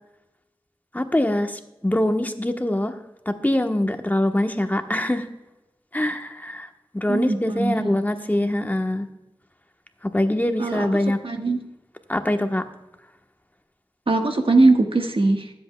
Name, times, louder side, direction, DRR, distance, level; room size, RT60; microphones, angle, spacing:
voice 1, 0.9-2.9 3.3-5.3 5.9-6.7 6.9-9.1 10.0-11.2 12.1-12.7, left 1 dB, 20° left, 5 dB, 1.1 m, -23 dB
voice 2, 7.1-7.9 10.6-10.9 11.2-11.6 14.1-15.5, right 2 dB, 70° right, 4 dB, 1.4 m, -20 dB
23.5 x 7.9 x 2.3 m, 0.96 s
wide cardioid pair, 55°, 9 cm